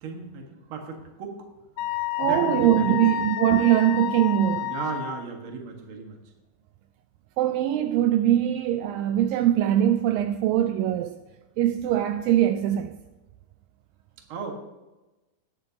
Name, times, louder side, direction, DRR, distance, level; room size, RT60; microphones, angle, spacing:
voice 1, 0.0-1.4 2.2-3.0 4.6-6.2 14.3-14.5, right 5 dB, 55° right, 1.5 m, -35 dB
Wind instrument woodwind instrument, 1.8-5.3, left 10 dB, 80° left, 2.2 m, -30 dB
voice 2, 2.2-4.7 7.4-11.2 11.6-13.0, right 12 dB, 90° right, 1.9 m, -22 dB
18.0 x 8.8 x 2.8 m
omnidirectional pair, 4.5 m